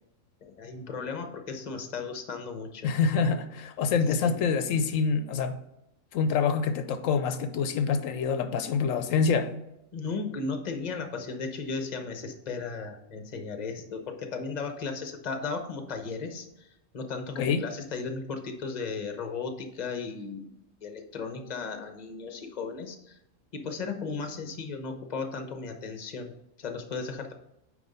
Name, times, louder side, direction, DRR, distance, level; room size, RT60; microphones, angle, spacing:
voice 1, 0.4-3.0 3.9-4.3 9.9-16.7 16.9-20.5 20.8-23.2 23.5-27.3, left 4 dB, 35° left, 6 dB, 0.9 m, -36 dB
voice 2, 2.8-5.6 6.1-9.5 17.4-17.6, left 5 dB, 80° left, 10 dB, 1.0 m, -26 dB
9.3 x 3.2 x 5.2 m, 0.84 s
omnidirectional pair, 1.4 m